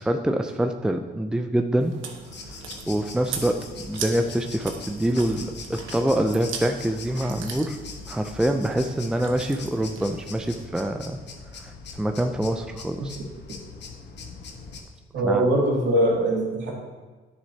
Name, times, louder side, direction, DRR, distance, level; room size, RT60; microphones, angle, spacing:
voice 1, 0.0-2.0 2.9-7.8 8.1-11.2 11.6-13.2 15.2-15.5, right 1 dB, 5° right, 6 dB, 0.4 m, -25 dB
Chewing mastication, 1.8-10.6, right 6 dB, 80° right, 1.0 m, -40 dB
sound 1, 2.2-14.8, left 4 dB, 60° left, 1.1 m, -41 dB
voice 2, 15.1-16.7, right 1 dB, 65° right, -3 dB, 2.5 m, -22 dB
10.5 x 6.5 x 2.8 m, 1.3 s
cardioid pair, 90°, 20 cm